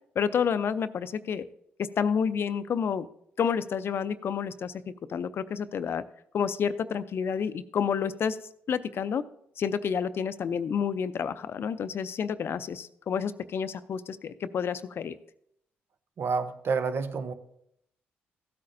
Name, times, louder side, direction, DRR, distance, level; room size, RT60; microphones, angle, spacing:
voice 1, 0.2-1.4 2.0-3.1 3.4-4.7 5.1-6.0 6.3-8.4 8.7-9.2 9.6-15.1, left 7 dB, 60° left, 13 dB, 0.5 m, -29 dB
voice 2, 16.2-17.3, right 5 dB, 60° right, 10 dB, 0.7 m, -29 dB
15.5 x 8.5 x 2.6 m, 0.73 s
supercardioid pair, 60°, 5 cm